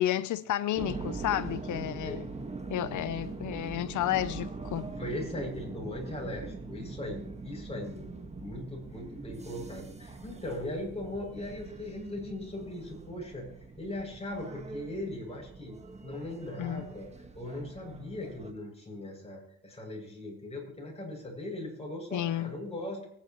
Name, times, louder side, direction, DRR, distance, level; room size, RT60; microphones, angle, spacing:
voice 1, 0.0-2.2 2.7-4.9 16.6-16.9 22.1-22.5, left 12 dB, 75° left, 0.8 m, -31 dB
sound 1, 0.8-18.5, right 3 dB, 20° right, 1.7 m, -42 dB
voice 2, 4.9-13.5 13.8-17.1 17.3-23.1, left 1 dB, 20° left, 7.3 m, -39 dB
24.0 x 10.5 x 3.1 m
cardioid pair, 90°, 30 cm